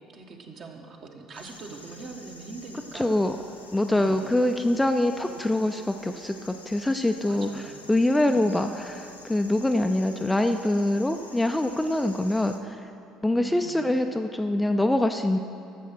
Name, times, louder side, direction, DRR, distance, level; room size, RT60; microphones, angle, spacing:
voice 1, 0.1-3.2 3.9-4.4 5.2-5.4 7.3-7.9 8.3-8.5 13.4-13.8, right 4 dB, 45° right, 2 dB, 1.3 m, -43 dB
sound 1, 1.3-12.6, left 2 dB, 90° left, 0.6 m, -49 dB
voice 2, 2.9-3.4 3.7-7.6 7.9-12.8 13.2-15.4, left 1 dB, 10° left, 6 dB, 0.5 m, -24 dB
12.0 x 7.1 x 6.1 m, 2.6 s
figure-of-eight pair, 55°, 0 cm